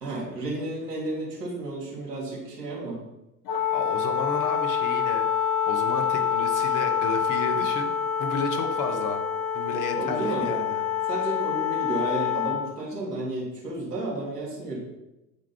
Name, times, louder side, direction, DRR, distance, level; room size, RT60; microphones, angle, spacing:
voice 1, 0.0-3.0 7.5-7.7 10.0-10.5 11.1-14.8, right 2 dB, 90° right, -3 dB, 2.1 m, -32 dB
Wind instrument woodwind instrument, 3.5-12.6, left 8 dB, 60° left, 1.5 m, -26 dB
voice 2, 3.7-7.9 8.2-9.2 9.5-10.8, left 3 dB, 40° left, 5 dB, 1.3 m, -32 dB
8.9 x 3.7 x 5.7 m, 0.96 s
figure-of-eight pair, 70°, 47 cm